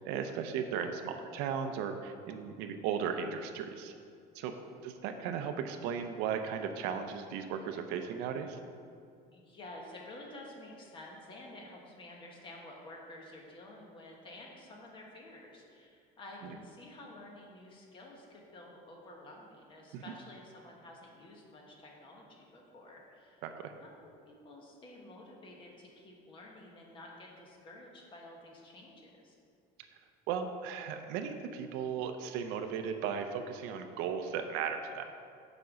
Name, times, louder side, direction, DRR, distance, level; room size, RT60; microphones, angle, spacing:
voice 1, 0.0-3.9 4.3-4.5 4.8-8.6 16.4-16.6 19.9-20.0 23.4-23.7 30.3-35.1, right 7 dB, 90° right, 6 dB, 0.7 m, -36 dB
voice 2, 4.5-4.9 9.3-23.4 23.8-29.3, left 1 dB, 30° left, -1 dB, 1.4 m, -51 dB
7.1 x 5.4 x 6.2 m, 2.3 s
cardioid pair, 155°, 17 cm